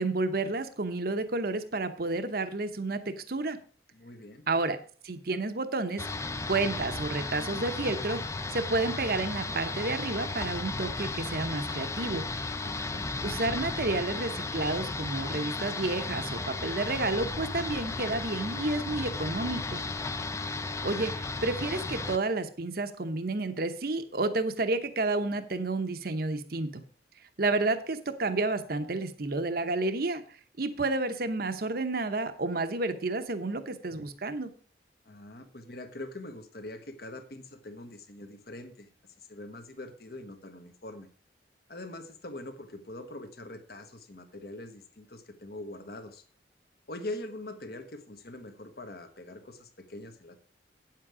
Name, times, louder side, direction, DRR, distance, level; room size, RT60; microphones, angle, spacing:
voice 1, 0.0-3.6 4.5-4.8 5.0-6.1 6.5-12.3 13.2-19.8 20.8-26.8 27.4-30.2 30.6-34.5, right 2 dB, 55° right, 9 dB, 0.9 m, -30 dB
voice 2, 3.9-4.4 12.6-13.0 35.0-38.9 39.2-41.1 41.7-46.2 46.9-50.4, left 1 dB, 60° left, 8 dB, 1.3 m, -43 dB
sound 1, 6.0-22.2, left 3 dB, 15° left, 0.4 m, -34 dB
9.2 x 7.5 x 4.9 m, 0.41 s
head